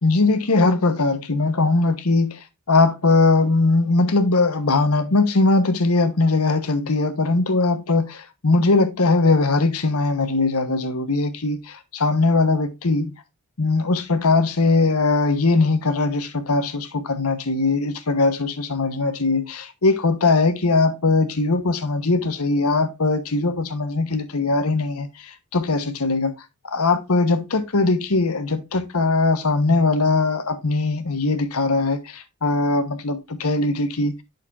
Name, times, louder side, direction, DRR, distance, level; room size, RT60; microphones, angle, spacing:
voice 1, 0.0-2.4 2.7-13.1 13.6-26.3 26.6-34.1, left 3 dB, 85° left, 1.2 m, -20 dB
8.6 x 6.6 x 2.5 m
head